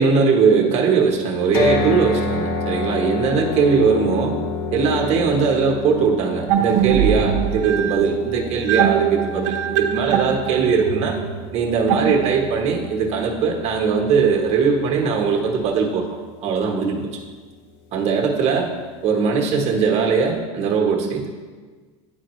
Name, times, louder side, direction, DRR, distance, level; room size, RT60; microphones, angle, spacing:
voice 1, 0.0-4.4 4.7-11.2 11.5-16.0 16.4-17.1 17.9-18.7 19.0-21.3, right 5 dB, 45° right, 0 dB, 1.2 m, -20 dB
sound 1, 1.5-15.7, left 3 dB, 70° left, 1.0 m, -29 dB
sound 2, 6.5-12.7, right 9 dB, 75° right, 0.7 m, -22 dB
10.5 x 4.3 x 3.1 m, 1.4 s
supercardioid pair, 125°, 16 cm